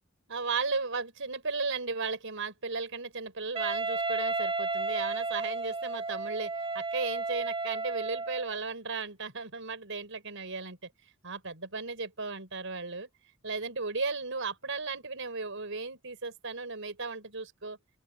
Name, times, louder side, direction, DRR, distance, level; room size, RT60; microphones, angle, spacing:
voice 1, 0.3-10.8 11.2-13.1 13.4-17.8, right 4 dB, 65° right, 6.0 m, -35 dB
Wind instrument woodwind instrument, 3.6-8.6, right 3 dB, 25° right, 1.4 m, -33 dB
open air
head